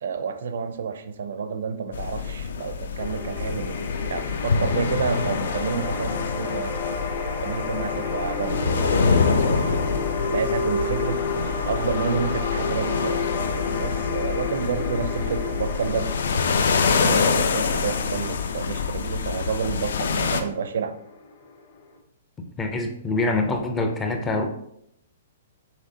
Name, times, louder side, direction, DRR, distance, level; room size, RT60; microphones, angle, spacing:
voice 1, 0.0-3.8 4.1-6.8 7.4-9.8 10.3-13.2 13.7-16.2 16.8-21.0, right 6 dB, 65° right, 10 dB, 0.5 m, -30 dB
sound 1, 1.9-20.4, left 5 dB, 75° left, 0.5 m, -26 dB
sound 2, 3.0-21.9, left 4 dB, 40° left, 0.9 m, -31 dB
voice 2, 22.6-24.4, left 2 dB, 10° left, 4 dB, 0.4 m, -25 dB
5.9 x 3.1 x 2.8 m, 0.73 s
hypercardioid pair, 175°, 0 cm